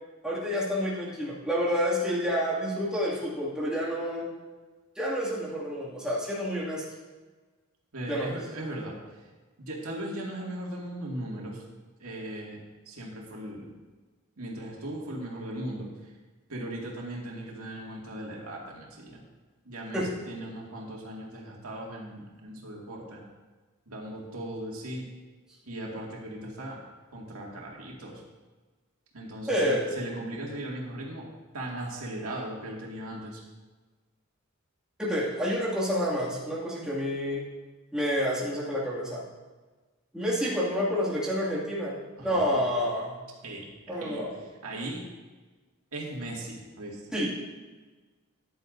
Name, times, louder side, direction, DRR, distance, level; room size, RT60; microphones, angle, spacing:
voice 1, 0.2-4.3 5.0-6.8 8.1-8.4 19.9-20.1 29.5-29.9 35.0-37.4 37.9-39.2 40.1-43.1 43.9-44.4 47.1-47.3, equal, 5° right, -7 dB, 2.3 m, -29 dB
voice 2, 7.9-9.0 9.6-11.6 12.0-12.6 12.9-13.7 14.4-15.9 16.5-19.2 19.7-23.2 23.9-25.0 25.6-26.8 27.1-28.2 29.1-31.3 31.5-33.4 42.2-42.6 43.4-44.2 44.6-45.0 45.9-47.1, right 1 dB, 85° right, -3 dB, 2.2 m, -38 dB
14.0 x 10.0 x 2.7 m, 1.3 s
head